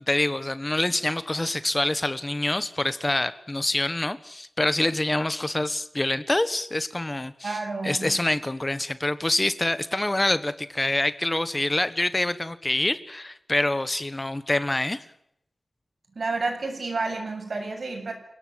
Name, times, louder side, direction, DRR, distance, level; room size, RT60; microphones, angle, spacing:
voice 1, 0.1-7.6 7.8-15.0, left 1 dB, 25° left, 13 dB, 1.3 m, -26 dB
voice 2, 7.4-8.2 16.2-18.1, right 3 dB, 70° right, 4 dB, 7.5 m, -30 dB
29.0 x 18.0 x 7.7 m, 0.76 s
wide cardioid pair, 95°, 0 cm